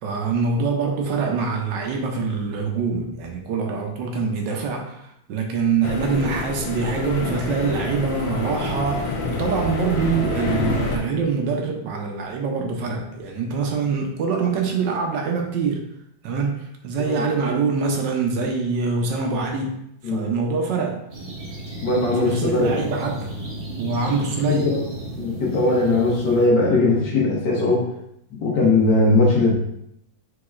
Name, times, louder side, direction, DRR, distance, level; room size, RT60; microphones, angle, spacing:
voice 1, 0.0-15.8 16.2-19.8 20.0-21.0 22.2-23.3 23.8-24.7, right 4 dB, 75° right, 2 dB, 1.2 m, -24 dB
sound 1, 5.8-11.0, left 3 dB, 80° left, 1.4 m, -27 dB
sound 2, 21.1-26.5, right 1 dB, 45° right, 0.7 m, -34 dB
voice 2, 21.8-22.8 24.5-24.8 25.2-27.8 28.4-29.5, left 2 dB, 65° left, -5 dB, 1.8 m, -19 dB
4.8 x 3.8 x 2.4 m, 0.76 s
omnidirectional pair, 2.1 m